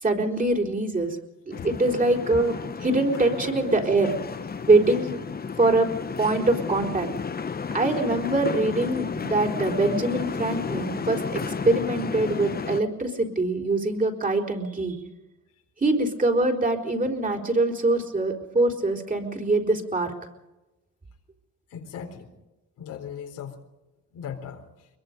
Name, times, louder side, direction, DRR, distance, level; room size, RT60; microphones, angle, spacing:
voice 1, 0.0-1.2 1.5-4.1 4.7-5.2 5.6-5.9 6.2-7.1 7.7-15.0 15.8-20.1, right 2 dB, 25° right, 2 dB, 4.1 m, -23 dB
sound 1, 1.5-12.8, left 5 dB, 30° left, 1.1 m, -32 dB
voice 2, 21.7-22.3 22.8-23.6 24.1-24.9, left 7 dB, 85° left, 3 dB, 4.0 m, -38 dB
23.0 x 22.0 x 5.3 m, 1.0 s
cardioid pair, 90°, 30 cm